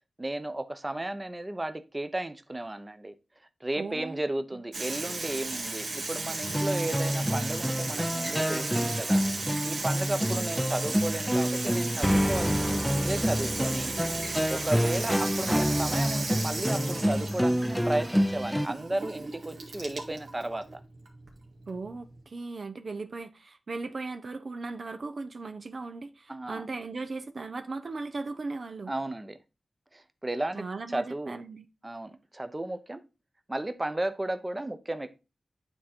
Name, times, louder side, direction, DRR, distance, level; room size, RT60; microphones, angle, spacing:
voice 1, 0.2-3.1 3.6-13.9 14.5-20.8 26.3-26.6 28.9-29.4 29.9-30.6 30.9-31.4 31.8-33.0 33.5-35.1, right 1 dB, 25° right, 0.8 m, -34 dB
voice 2, 3.8-4.2 4.5-4.6 10.3-10.5 21.7-28.9 30.5-31.7, right 3 dB, 60° right, 0.7 m, -37 dB
Water tap faucet / Sink (filling or washing), 4.7-22.2, right 3 dB, 80° right, 1.9 m, -36 dB
sound 1, 6.4-18.7, equal, ahead, 0.5 m, -28 dB
9.2 x 3.7 x 4.3 m
cardioid pair, 55°, 0 cm